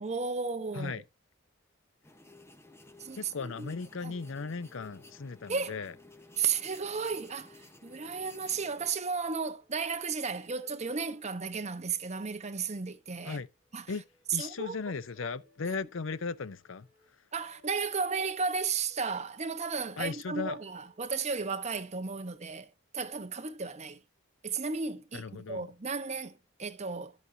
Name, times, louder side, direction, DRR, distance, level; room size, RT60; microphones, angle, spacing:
voice 1, 0.0-1.0 3.0-3.7 4.0-4.2 5.5-5.8 6.4-13.4 13.7-13.8 14.4-14.8 17.3-24.0 24.4-27.1, right 5 dB, 35° right, 1.0 m, -34 dB
sound 1, 2.0-8.9, left 2 dB, 15° left, 1.0 m, -54 dB
voice 2, 3.2-5.9 13.2-13.5 13.9-14.0 14.3-16.9 20.0-20.6 25.1-25.7, left 4 dB, 75° left, 0.6 m, -37 dB
sound 2, 4.6-21.1, equal, 45° left, 7.1 m, -68 dB
11.5 x 8.2 x 2.7 m
head